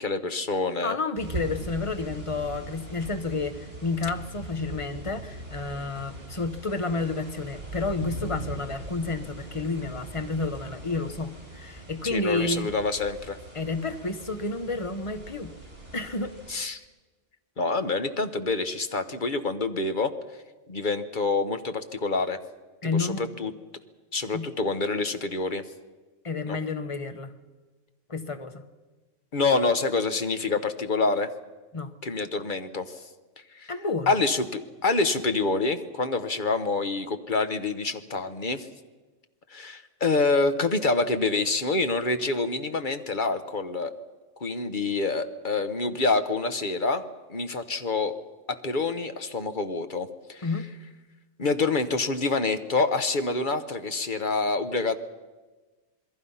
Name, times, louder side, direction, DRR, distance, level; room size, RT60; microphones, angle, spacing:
voice 1, 0.0-1.0 12.1-13.4 16.5-16.8 17.6-20.1 20.7-22.4 23.0-23.5 24.1-25.6 26.5-26.6 29.3-31.3 32.0-33.0 33.5-33.7 34.1-38.7 39.5-43.9 44.4-47.0 47.3-48.1 48.5-50.5 51.4-55.0, left 3 dB, 40° left, 9 dB, 1.2 m, -27 dB
voice 2, 0.8-12.7 13.5-15.5 15.9-16.4 22.8-23.2 24.3-24.5 26.2-27.3 28.1-28.6 31.7-31.9 33.7-34.1 50.4-50.7, left 3 dB, 25° left, 8 dB, 1.2 m, -30 dB
sound 1, 1.1-16.5, right 2 dB, 50° right, 6.3 m, -41 dB
27.5 x 21.5 x 5.6 m, 1.3 s
omnidirectional pair, 1.3 m